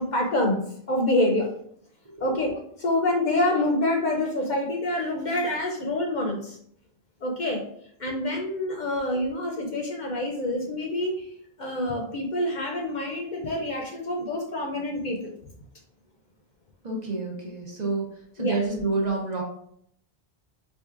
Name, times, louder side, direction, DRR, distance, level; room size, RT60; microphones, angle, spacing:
voice 1, 0.0-1.5 2.2-2.5 2.8-6.6 7.2-7.6 8.0-11.3 11.6-15.3 18.4-18.6, left 1 dB, 55° left, 1 dB, 0.6 m, -26 dB
voice 2, 16.8-18.1 18.4-19.4, right 3 dB, 45° right, -2 dB, 0.9 m, -28 dB
4.5 x 2.7 x 2.4 m, 0.67 s
omnidirectional pair, 1.1 m